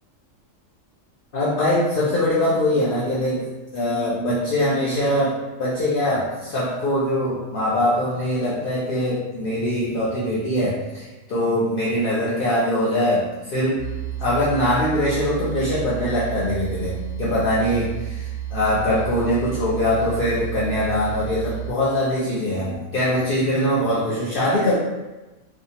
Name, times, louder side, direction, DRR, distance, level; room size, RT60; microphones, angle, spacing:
voice 1, 1.3-13.8 14.2-24.7, left 1 dB, 60° left, -7 dB, 0.6 m, -22 dB
sound 1, 13.8-21.7, right 12 dB, 35° right, 1.0 m, -31 dB
2.7 x 2.3 x 2.7 m, 1.1 s
omnidirectional pair, 1.4 m